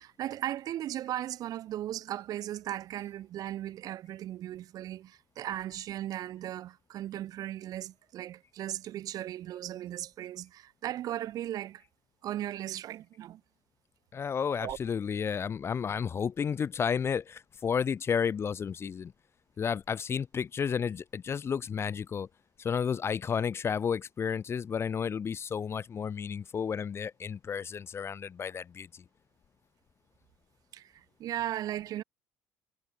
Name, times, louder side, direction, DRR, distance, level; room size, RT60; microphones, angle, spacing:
voice 1, 0.0-11.8 12.2-13.4 14.6-14.8 30.7-32.0, right 12 dB, 45° right, 0.6 m, -37 dB
voice 2, 14.1-19.1 19.6-22.3 22.6-29.0, left 7 dB, 30° left, 0.5 m, -32 dB
figure-of-eight pair, 55°, 9 cm